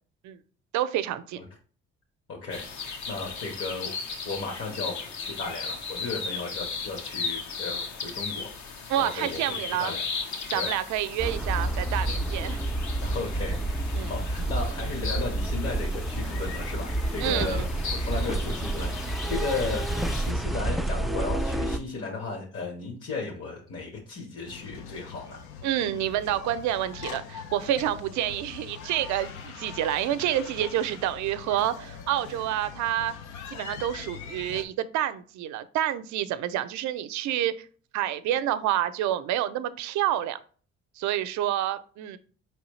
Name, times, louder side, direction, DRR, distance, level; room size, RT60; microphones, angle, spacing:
voice 1, 0.7-1.4 8.9-10.0 10.5-12.6 13.9-14.1 17.2-17.7 25.6-33.1 33.5-37.5 37.9-40.4 41.0-42.2, right 12 dB, 75° right, 0.5 m, -28 dB
voice 2, 2.3-4.0 4.2-10.0 10.5-10.7 12.8-17.6 18.0-25.4, left 3 dB, 50° left, 1.3 m, -35 dB
sound 1, 2.5-20.3, left 5 dB, 70° left, 1.2 m, -37 dB
sound 2, 11.2-21.8, right 1 dB, ahead, 0.4 m, -29 dB
sound 3, 24.4-34.7, left 6 dB, 85° left, 0.7 m, -42 dB
4.5 x 3.1 x 3.1 m
supercardioid pair, 70°, 30 cm